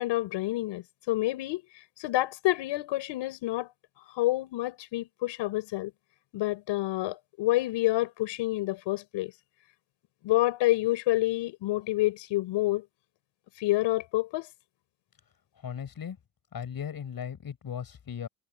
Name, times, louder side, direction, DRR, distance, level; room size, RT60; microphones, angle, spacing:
voice 1, 0.0-1.6 2.0-3.7 4.1-5.9 6.3-9.3 10.2-12.9 13.6-14.5, left 17 dB, 90° left, 6.1 m, -28 dB
voice 2, 15.6-16.2 16.5-18.3, left 8 dB, 55° left, 6.6 m, -37 dB
cardioid pair, 75°, 43 cm